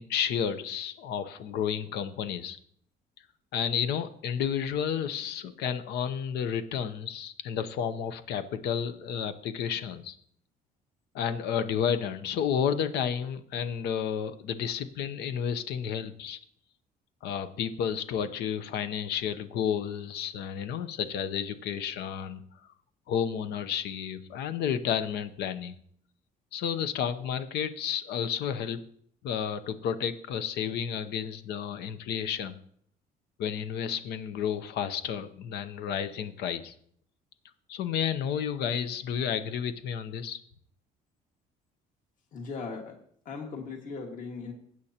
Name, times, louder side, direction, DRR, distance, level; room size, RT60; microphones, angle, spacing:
voice 1, 0.0-2.6 3.5-10.1 11.1-16.4 17.2-22.4 23.1-25.7 26.5-28.8 29.2-32.6 33.4-36.7 37.7-40.4, left 8 dB, 80° left, 11 dB, 0.8 m, -31 dB
voice 2, 42.3-43.0 43.3-44.5, left 4 dB, 50° left, 2 dB, 1.9 m, -38 dB
15.5 x 8.7 x 2.9 m, 0.63 s
cardioid pair, 110°, 17 cm